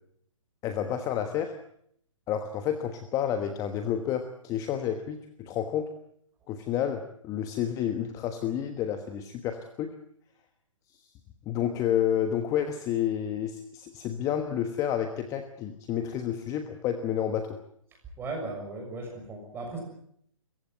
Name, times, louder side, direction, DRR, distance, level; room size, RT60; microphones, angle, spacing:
voice 1, 0.6-1.5 2.3-5.9 6.5-9.9 11.0-11.1 11.4-17.6, left 9 dB, 20° left, 8 dB, 1.3 m, -30 dB
voice 2, 18.2-19.8, right 3 dB, 15° right, 2 dB, 6.6 m, -36 dB
24.5 x 15.5 x 9.2 m, 0.69 s
hypercardioid pair, 150°, 17 cm